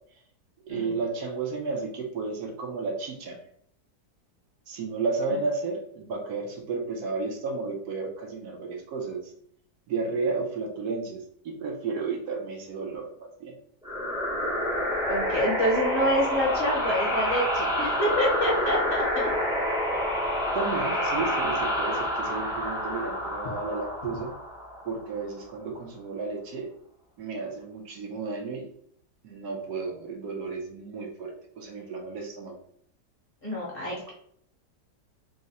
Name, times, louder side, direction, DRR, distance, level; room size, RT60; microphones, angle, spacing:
voice 1, 0.7-3.4 4.7-9.3 9.9-13.5 20.5-24.4 24.8-26.7 27.2-28.7 29.2-32.6 33.9-34.1, right 4 dB, 70° right, 1 dB, 1.1 m, -33 dB
sound 1, 13.8-25.2, equal, 5° right, 0.6 m, -28 dB
voice 2, 15.1-19.3 33.4-34.1, equal, 40° left, -4 dB, 0.9 m, -27 dB
3.6 x 2.1 x 4.0 m, 0.65 s
omnidirectional pair, 1.9 m